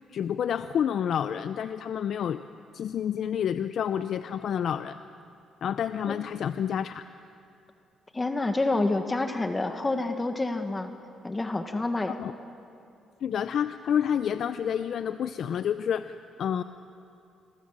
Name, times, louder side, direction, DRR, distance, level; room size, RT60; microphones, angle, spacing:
voice 1, 0.1-2.4 2.7-5.0 5.6-7.0 12.2-12.3 13.2-16.6, left 8 dB, 65° left, 11 dB, 0.6 m, -29 dB
voice 2, 8.1-10.9 11.2-12.2, left 2 dB, 20° left, 6 dB, 1.6 m, -28 dB
27.0 x 22.5 x 7.5 m, 2.6 s
cardioid pair, 90°, 0 cm